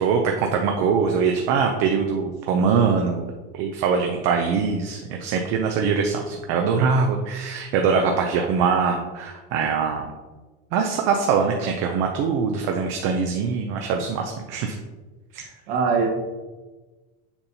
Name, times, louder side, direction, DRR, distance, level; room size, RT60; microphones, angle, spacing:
voice 1, 0.0-10.1 10.7-14.8 15.3-15.4, right 5 dB, 50° right, 3 dB, 0.6 m, -23 dB
voice 2, 15.3-16.1, right 5 dB, 75° right, 1 dB, 1.5 m, -23 dB
7.0 x 5.3 x 2.8 m, 1.3 s
cardioid pair, 170°, 30 cm